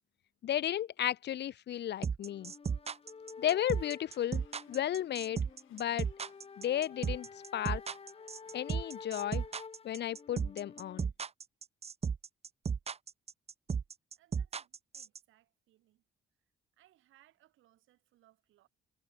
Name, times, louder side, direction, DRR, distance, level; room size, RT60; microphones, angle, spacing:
voice 1, 0.4-2.5 3.4-5.4 5.7-6.1 6.6-7.3 7.5-7.8 8.5-9.4 9.8-11.1, left 11 dB, 60° left, 0.7 m, -34 dB
sound 1, 2.0-15.2, right 6 dB, 30° right, 0.7 m, -34 dB
sound 2, 2.2-11.0, left 5 dB, 30° left, 1.1 m, -51 dB
sound 3, 3.8-9.6, left 14 dB, 85° left, 3.7 m, -68 dB
voice 2, 14.2-16.0 16.8-18.7, right 14 dB, 85° right, 6.6 m, -68 dB
cardioid pair, 90°, 20 cm